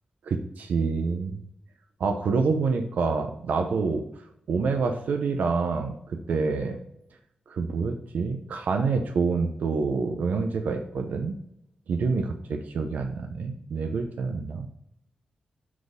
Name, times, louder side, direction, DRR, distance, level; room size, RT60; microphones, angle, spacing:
voice 1, 0.2-1.4 2.0-4.0 4.5-6.8 7.5-11.3 11.9-14.7, right 4 dB, 75° right, 5 dB, 0.7 m, -27 dB
7.4 x 4.1 x 5.0 m, 0.78 s
wide cardioid pair, 180°, 3 cm